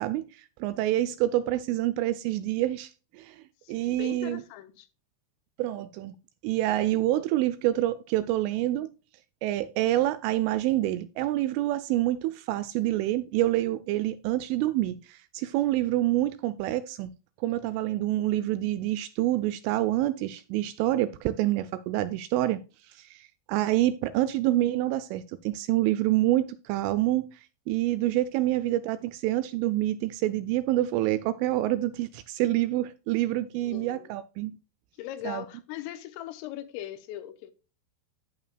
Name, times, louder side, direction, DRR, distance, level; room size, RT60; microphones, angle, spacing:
voice 1, 0.0-3.4 3.7-4.4 5.6-6.2 6.4-8.9 9.4-17.1 17.4-22.6 22.9-27.4 27.7-34.5 35.3-35.4, right 15 dB, 85° right, 2.8 m, -27 dB
voice 2, 3.6-4.9 33.6-34.1 35.0-37.5, left 13 dB, 85° left, 3.3 m, -40 dB
11.0 x 9.1 x 2.2 m
omnidirectional pair, 6.0 m